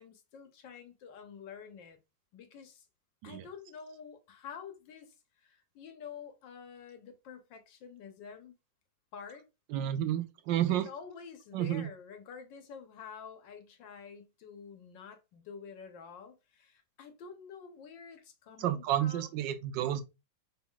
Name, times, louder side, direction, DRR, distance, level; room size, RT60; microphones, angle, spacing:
voice 1, 0.0-2.0 2.3-2.9 3.2-5.1 5.4-8.5 9.1-9.5 10.7-19.3, left 6 dB, 85° left, 1.6 m, -48 dB
voice 2, 9.7-10.9 11.5-11.9 18.6-20.0, right 11 dB, 80° right, 1.3 m, -31 dB
5.5 x 3.9 x 2.3 m
omnidirectional pair, 1.9 m